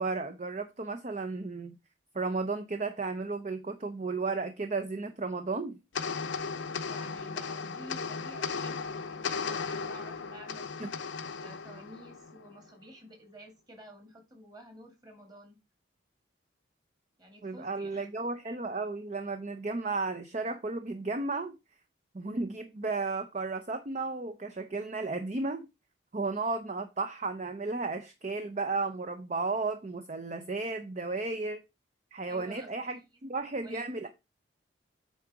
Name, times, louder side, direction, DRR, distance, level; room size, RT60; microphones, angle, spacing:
voice 1, 0.0-1.8 2.1-5.8 10.8-10.9 17.4-21.6 22.1-25.7 26.1-31.6 32.1-34.1, right 3 dB, 35° right, 0.6 m, -34 dB
sound 1, 5.9-12.6, left 5 dB, 80° left, 0.7 m, -36 dB
voice 2, 6.9-10.8 11.4-15.6 17.2-18.1 32.3-32.7 33.6-34.1, equal, 20° right, 2.0 m, -51 dB
8.4 x 3.9 x 4.7 m
head